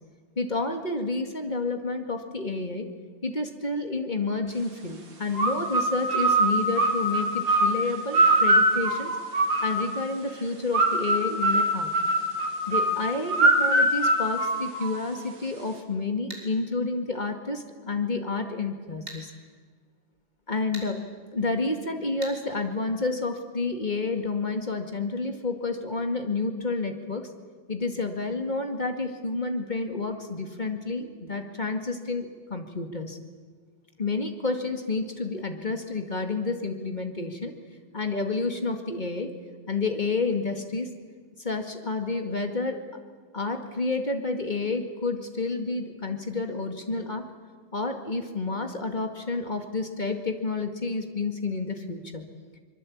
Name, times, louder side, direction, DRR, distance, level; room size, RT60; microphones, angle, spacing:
voice 1, 0.4-2.9 3.2-9.2 9.6-11.9 12.7-19.3 20.5-21.0 21.3-27.3 27.7-33.2 34.0-37.5 37.9-39.3 39.7-40.9 41.4-42.8 43.3-47.2 47.7-52.2, left 3 dB, 25° left, 5 dB, 2.1 m, -30 dB
sound 1, 5.3-10.1 10.7-15.2, right 1 dB, 80° right, 3.4 m, -23 dB
sound 2, 16.3-16.5 19.1-19.2 20.7-20.9 22.2-22.4, right 1 dB, 20° right, 4.8 m, -39 dB
24.5 x 22.5 x 8.7 m, 1.5 s
omnidirectional pair, 2.0 m